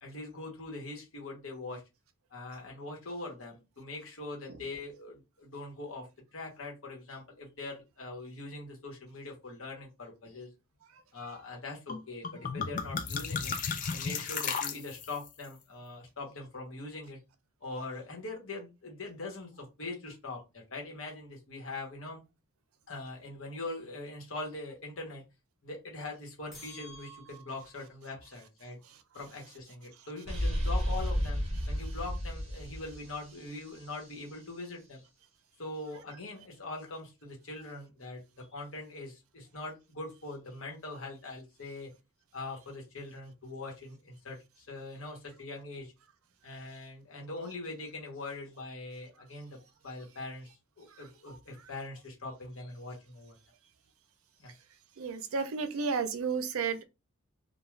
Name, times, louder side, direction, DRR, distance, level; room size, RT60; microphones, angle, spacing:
voice 1, 0.0-1.8 2.3-6.1 6.3-10.5 11.1-13.5 13.9-17.2 17.6-22.2 22.9-25.2 25.6-28.8 29.1-35.0 35.6-41.9 42.3-45.9 46.4-49.6 49.8-50.5 50.8-53.3 54.4-54.5, left 2 dB, 70° left, 1.0 m, -42 dB
sound 1, 11.9-12.0 12.2-15.3, left 6 dB, 35° left, 0.3 m, -34 dB
sound 2, 26.5-27.9, right 1 dB, ahead, 1.0 m, -51 dB
sound 3, 30.3-34.0, equal, 30° right, 0.7 m, -32 dB
voice 2, 55.0-56.8, right 5 dB, 80° right, 0.5 m, -32 dB
2.3 x 2.2 x 3.1 m
head